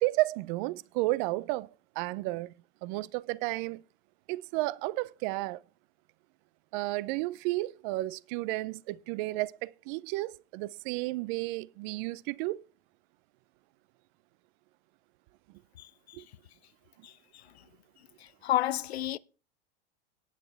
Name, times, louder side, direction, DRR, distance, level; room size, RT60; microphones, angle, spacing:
voice 1, 0.0-1.7 2.0-2.5 2.8-3.8 4.3-5.6 6.7-12.6 16.1-16.2, right 20 dB, 50° right, 0.6 m, -32 dB
voice 2, 15.8-16.2 17.0-17.1 18.4-19.2, left 13 dB, 90° left, 0.5 m, -31 dB
18.5 x 6.8 x 3.4 m
hypercardioid pair, 105°, 31 cm